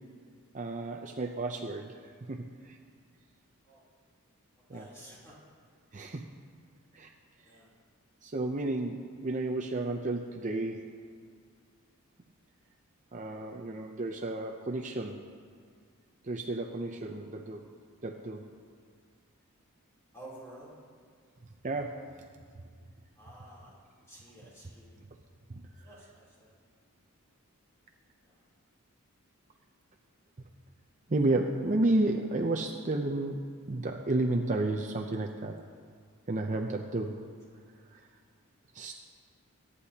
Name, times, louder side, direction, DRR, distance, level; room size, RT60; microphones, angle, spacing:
voice 1, 0.5-2.8 4.7-4.9 5.9-6.2 6.9-7.1 8.2-10.8 13.1-15.2 16.2-17.7 18.0-18.4 21.6-21.9 25.5-25.6 30.4-30.5 31.1-33.3 33.7-35.5 36.3-37.2 37.9-38.0 38.7-38.9, right 2 dB, 35° right, 3 dB, 0.6 m, -32 dB
voice 2, 4.6-5.3 7.4-7.7 20.1-20.7 23.2-23.8 24.1-24.9 25.8-26.5 28.2-28.4, right 1 dB, 15° left, -7 dB, 3.3 m, -51 dB
23.0 x 9.8 x 2.9 m, 2.1 s
head